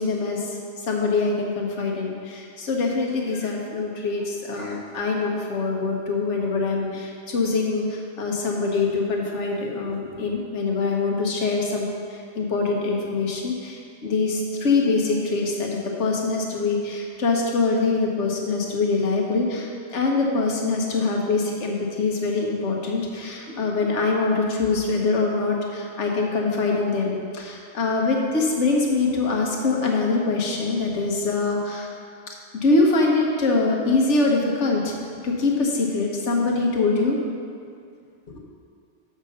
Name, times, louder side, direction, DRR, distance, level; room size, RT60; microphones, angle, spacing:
voice 1, 0.0-31.9 32.3-32.4 32.6-34.9 35.2-37.2 38.3-38.4, left 3 dB, 70° left, -1 dB, 1.3 m, -24 dB
6.5 x 5.2 x 6.5 m, 2.3 s
omnidirectional pair, 1.2 m